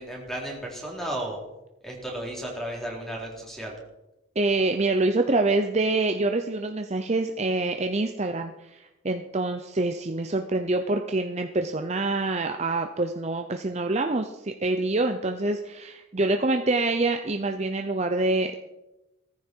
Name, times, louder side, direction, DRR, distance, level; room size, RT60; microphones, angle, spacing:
voice 1, 0.0-1.4 1.8-3.7, right 1 dB, ahead, -2 dB, 3.7 m, -34 dB
voice 2, 4.4-18.5, right 2 dB, 30° right, 5 dB, 0.7 m, -26 dB
17.5 x 14.5 x 4.6 m, 0.97 s
head